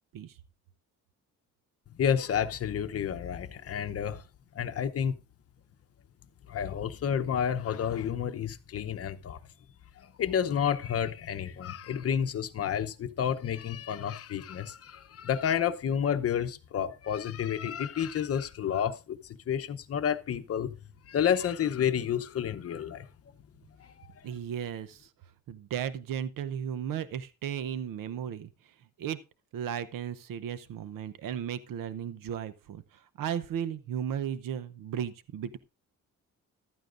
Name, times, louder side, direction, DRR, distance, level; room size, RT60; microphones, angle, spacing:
voice 1, 1.9-4.2 4.5-5.1 6.5-9.4 10.0-20.7 21.1-23.1 23.8-24.3, left 8 dB, 45° left, 0.8 m, -30 dB
voice 2, 24.2-25.1 25.5-28.5 29.0-29.2 29.5-35.6, right 9 dB, 85° right, 0.8 m, -35 dB
14.5 x 12.5 x 2.5 m
wide cardioid pair, 165°, 32 cm